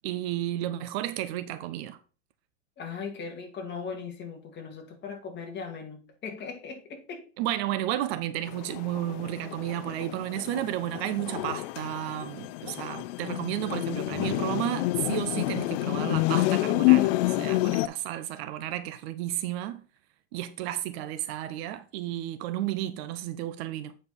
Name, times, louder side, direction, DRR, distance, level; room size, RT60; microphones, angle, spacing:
voice 1, 0.0-2.0 7.4-19.8 20.3-24.0, right 13 dB, 50° right, 0.7 m, -32 dB
voice 2, 2.8-7.3, left 5 dB, 25° left, 2.2 m, -39 dB
sound 1, 8.5-17.9, left 18 dB, 55° left, 0.5 m, -28 dB
8.6 x 5.1 x 4.1 m
supercardioid pair, 135°, 39 cm